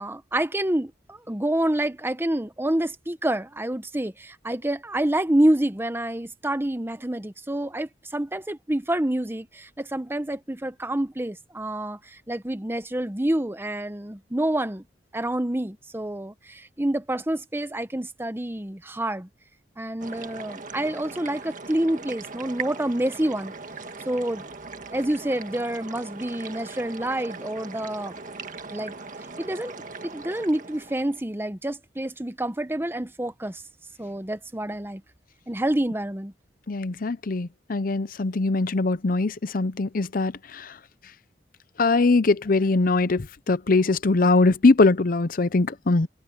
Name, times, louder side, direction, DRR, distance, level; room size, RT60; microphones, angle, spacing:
voice 1, 0.0-14.8 15.1-19.3 19.8-23.5 24.1-24.5 24.9-28.2 28.7-28.9 29.4-29.7 30.0-33.6 34.0-35.0 35.5-36.3, right 1 dB, 15° right, 0.9 m, -27 dB
sound 1, 20.0-31.2, right 4 dB, 50° right, 1.7 m, -39 dB
voice 2, 36.7-40.7 41.8-46.1, left 3 dB, 55° left, 0.7 m, -22 dB
head